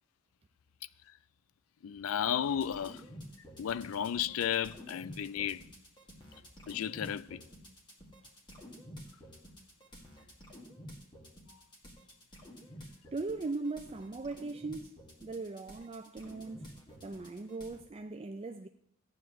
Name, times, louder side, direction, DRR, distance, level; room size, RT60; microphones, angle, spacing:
voice 1, 1.8-3.1 3.6-5.7 6.7-7.4 11.5-11.6, left 9 dB, 80° left, 0.4 m, -34 dB
sound 1, 2.4-17.8, equal, 25° left, 2.0 m, -51 dB
voice 2, 13.1-16.7 17.0-18.7, right 3 dB, 30° right, 0.4 m, -39 dB
14.5 x 9.4 x 3.2 m
head